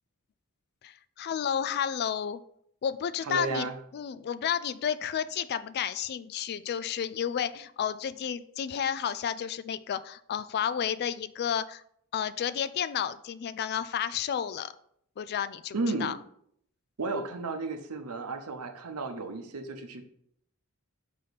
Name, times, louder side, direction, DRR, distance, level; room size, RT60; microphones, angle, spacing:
voice 1, 0.8-2.4 2.8-3.7 3.9-11.8 12.1-14.7 15.2-16.2, left 8 dB, 45° left, 15 dB, 0.3 m, -31 dB
voice 2, 3.2-3.8 15.7-16.1 17.0-20.0, right 3 dB, 90° right, 6 dB, 0.8 m, -33 dB
5.6 x 5.0 x 4.0 m, 0.69 s
head